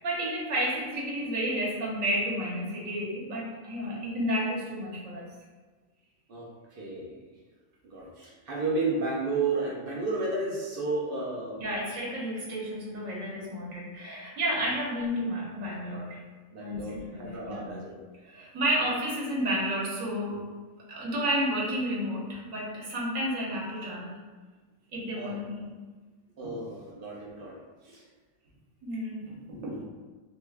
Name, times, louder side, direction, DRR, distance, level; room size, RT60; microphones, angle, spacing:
voice 1, 0.0-5.2 11.6-16.2 16.6-17.8 18.2-20.4 20.9-24.2 24.9-25.7 26.4-26.5 28.8-29.8, equal, 90° right, -5 dB, 1.2 m, -31 dB
voice 2, 6.3-7.1 7.8-11.7 16.5-18.0 25.1-25.4 26.4-27.5 27.8-28.0 29.5-29.8, right 3 dB, 55° right, -4 dB, 0.7 m, -32 dB
3.0 x 2.3 x 3.3 m, 1.3 s
omnidirectional pair, 1.3 m